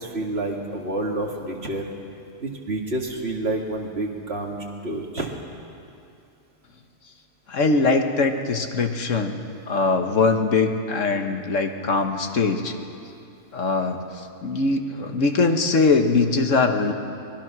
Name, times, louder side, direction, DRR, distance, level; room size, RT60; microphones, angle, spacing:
voice 1, 0.0-1.9 2.4-5.3, right 2 dB, 50° right, 1 dB, 2.4 m, -29 dB
voice 2, 7.5-12.7 13.5-16.9, left 3 dB, 70° left, 5 dB, 1.7 m, -22 dB
24.0 x 20.5 x 6.1 m, 2.6 s
omnidirectional pair, 1.3 m